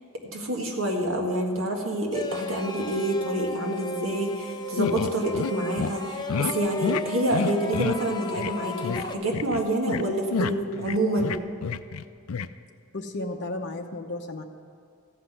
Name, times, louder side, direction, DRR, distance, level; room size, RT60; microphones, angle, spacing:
voice 1, 0.3-11.3, right 1 dB, 65° right, 1 dB, 1.7 m, -27 dB
sound 1, 2.1-9.1, left 3 dB, 20° left, 0.5 m, -36 dB
sound 2, 4.8-5.5 5.8-5.9 6.3-6.5 6.8-7.0 7.3-8.0 8.4-8.5 8.8-9.0 9.3-10.0 10.3-12.0 12.3-12.5, left 5 dB, 70° left, 0.4 m, -29 dB
voice 2, 12.9-14.4, left 2 dB, 50° left, 2 dB, 0.8 m, -33 dB
14.5 x 5.8 x 8.1 m, 2.4 s
head